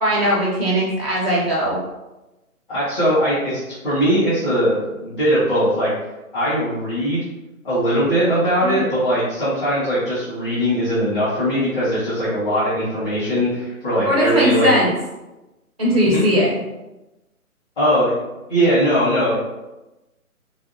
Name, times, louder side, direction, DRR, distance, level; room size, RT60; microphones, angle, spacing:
voice 1, 0.0-1.8 8.6-8.8 14.1-14.9 15.8-16.5, equal, 30° right, -5 dB, 0.4 m, -18 dB
voice 2, 2.7-5.9 6.3-7.2 7.6-14.7 16.0-16.3 17.8-18.1 18.5-19.4, equal, 35° left, -13 dB, 1.1 m, -20 dB
2.9 x 2.7 x 2.5 m, 1.0 s
hypercardioid pair, 165°, 44 cm